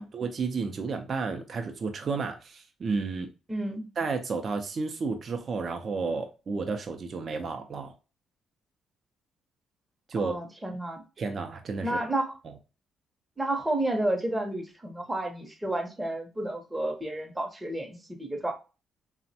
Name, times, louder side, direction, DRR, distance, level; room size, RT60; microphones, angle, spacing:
voice 1, 0.0-3.3 4.0-7.9 10.1-10.3 11.2-12.0, right 4 dB, 45° right, 0.4 m, -32 dB
voice 2, 3.5-3.9 10.2-11.0 11.8-12.4 13.4-18.5, right 1 dB, 10° right, 0.7 m, -31 dB
3.3 x 2.1 x 2.7 m
cardioid pair, 90°, 0 cm